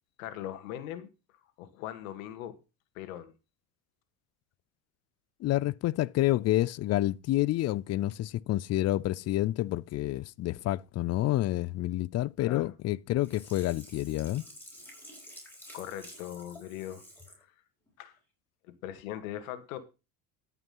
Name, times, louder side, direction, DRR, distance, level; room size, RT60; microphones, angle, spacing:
voice 1, 0.2-1.1 1.6-2.6 3.0-3.3 12.4-12.7 15.7-17.5 18.0-18.2 18.6-19.8, left 12 dB, 85° left, 2.0 m, -40 dB
voice 2, 5.4-14.4, left 15 dB, 40° left, 0.5 m, -29 dB
Sink (filling or washing), 13.2-17.4 17.9-18.0, left 1 dB, 5° left, 5.4 m, -50 dB
13.5 x 5.9 x 5.5 m
supercardioid pair, 105°, 40 cm